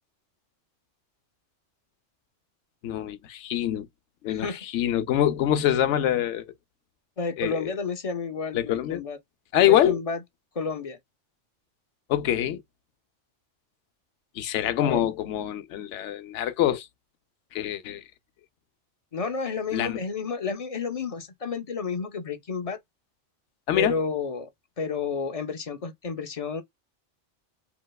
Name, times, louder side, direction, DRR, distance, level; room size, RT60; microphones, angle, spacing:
voice 1, 2.8-3.9 4.2-6.5 7.4-7.6 8.5-9.0 9.5-10.0 12.1-12.6 14.4-16.9 17.5-18.0 19.7-20.0 23.7-24.0, left 11 dB, 75° left, 0.9 m, -25 dB
voice 2, 4.3-4.6 7.2-9.2 9.6-10.2 10.6-11.0 14.8-15.0 19.1-22.8 23.7-24.5 24.8-26.6, left 5 dB, 45° left, 0.5 m, -31 dB
3.1 x 2.9 x 2.3 m
omnidirectional pair, 1.2 m